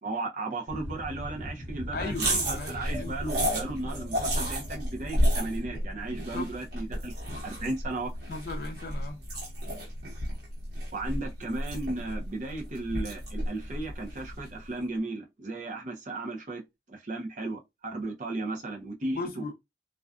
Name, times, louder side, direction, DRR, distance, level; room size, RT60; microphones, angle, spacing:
voice 1, 0.0-7.1 7.4-8.1 10.9-16.6 16.9-19.4, right 2 dB, 45° right, 0.6 m, -35 dB
sound 1, 0.7-5.8, equal, 25° left, 0.8 m, -41 dB
voice 2, 1.9-3.1 6.3-6.5 8.3-9.2 19.1-19.5, left 3 dB, 50° left, 0.5 m, -36 dB
sound 2, 2.1-14.6, equal, 60° right, 1.1 m, -32 dB
2.4 x 2.2 x 2.3 m
head